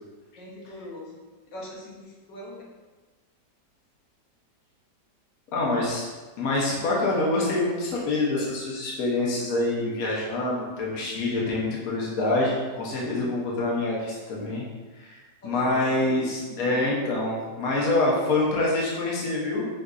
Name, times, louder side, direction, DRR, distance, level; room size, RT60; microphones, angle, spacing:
voice 1, 0.4-1.1 1.5-2.0 2.3-2.6 15.4-16.8, left 1 dB, 90° left, -4 dB, 1.6 m, -41 dB
voice 2, 5.5-6.1 6.4-14.6 15.0-19.7, left 2 dB, 60° left, -4 dB, 1.2 m, -26 dB
6.2 x 2.6 x 2.4 m, 1.3 s
omnidirectional pair, 1.8 m